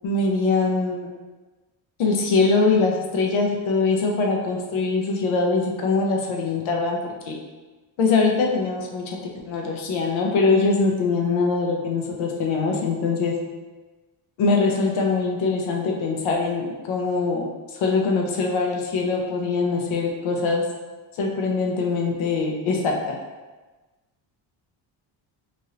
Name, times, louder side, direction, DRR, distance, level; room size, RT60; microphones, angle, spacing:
voice 1, 0.0-1.1 2.0-7.0 7.3-7.4 8.0-9.2 9.4-13.4 14.4-17.5 17.7-20.6 21.1-23.1, left 4 dB, 80° left, 0 dB, 0.7 m, -22 dB
3.2 x 2.6 x 2.7 m, 1.2 s
cardioid pair, 160°, 47 cm